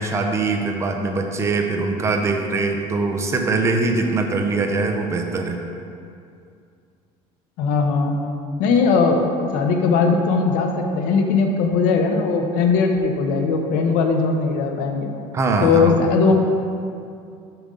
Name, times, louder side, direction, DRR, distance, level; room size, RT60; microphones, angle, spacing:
voice 1, 0.0-5.6 15.3-16.0, right 3 dB, 20° right, 3 dB, 0.5 m, -22 dB
voice 2, 7.6-8.1 8.6-9.2 9.5-15.1 15.6-16.3, left 4 dB, 80° left, 3 dB, 0.8 m, -19 dB
7.0 x 5.3 x 3.8 m, 2.4 s
cardioid pair, 160°, 14 cm